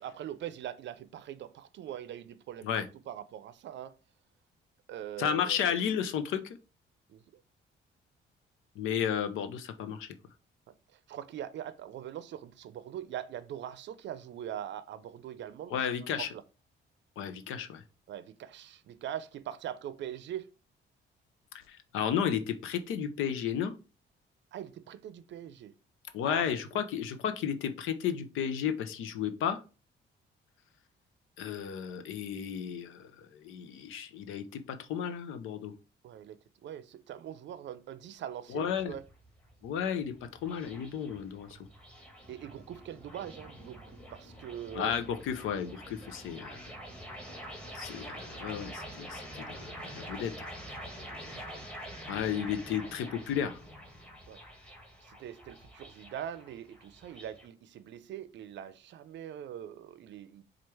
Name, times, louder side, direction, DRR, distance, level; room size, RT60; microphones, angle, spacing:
voice 1, 0.0-3.9 4.9-5.6 7.1-7.2 11.1-15.9 16.1-16.4 18.1-20.5 24.5-25.7 26.3-26.4 26.7-26.8 36.0-39.0 41.5-41.6 42.3-44.9 51.1-51.4 54.3-54.4 55.1-60.4, right 10 dB, 65° right, 0.5 m, -42 dB
voice 2, 5.2-6.4 8.8-10.1 15.7-16.3 17.2-17.8 21.7-23.7 26.1-29.6 31.4-35.7 38.5-39.0 39.6-40.1 40.4-41.6 44.7-46.7 47.7-50.3 52.1-53.6, left 8 dB, 90° left, 0.6 m, -33 dB
sound 1, 38.5-57.5, equal, 5° left, 1.3 m, -46 dB
4.4 x 2.5 x 4.7 m
cardioid pair, 90°, 20 cm